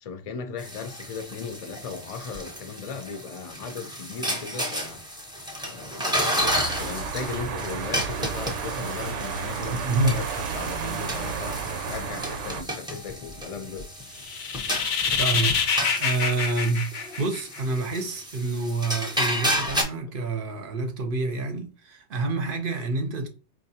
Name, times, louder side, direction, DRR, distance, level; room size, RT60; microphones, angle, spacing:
voice 1, 0.0-5.0 5.6-13.9, left 5 dB, 45° left, 0.5 m, -37 dB
sound 1, 0.6-19.8, equal, 5° right, 0.6 m, -32 dB
sound 2, 6.4-12.6, right 6 dB, 85° right, 0.9 m, -32 dB
voice 2, 9.6-10.2 15.2-23.3, right 3 dB, 55° right, 0.8 m, -28 dB
sound 3, 14.2-17.8, left 6 dB, 85° left, 1.0 m, -26 dB
4.5 x 2.6 x 2.7 m
omnidirectional pair, 1.2 m